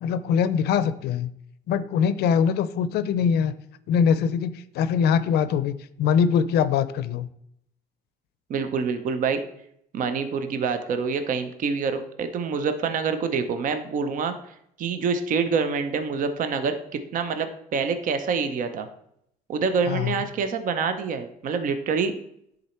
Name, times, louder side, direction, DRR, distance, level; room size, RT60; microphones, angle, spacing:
voice 1, 0.0-1.3 1.7-3.5 3.9-7.3 19.9-20.1, left 7 dB, 75° left, 14 dB, 0.5 m, -23 dB
voice 2, 8.5-9.4 9.9-18.9 19.5-22.1, right 5 dB, 50° right, 9 dB, 0.7 m, -26 dB
10.0 x 3.9 x 4.4 m, 0.74 s
cardioid pair, 110°, 17 cm